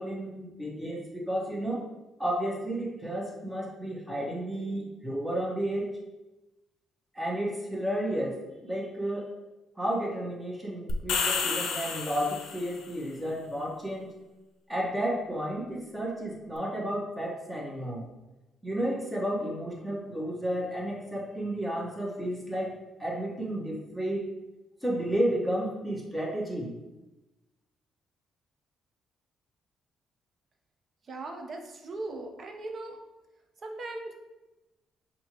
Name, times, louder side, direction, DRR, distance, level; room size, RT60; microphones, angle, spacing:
voice 1, 0.0-1.8 2.2-5.9 7.1-9.3 9.8-14.2 14.7-18.1 18.6-24.3 24.8-26.7, right 1 dB, 10° right, -3 dB, 1.1 m, -32 dB
sound 1, 10.9-12.8, left 5 dB, 85° left, 0.5 m, -30 dB
voice 2, 31.1-33.0 33.6-34.1, right 2 dB, 50° right, 3 dB, 0.7 m, -38 dB
5.4 x 2.8 x 2.9 m, 1.0 s
cardioid pair, 90°, 0 cm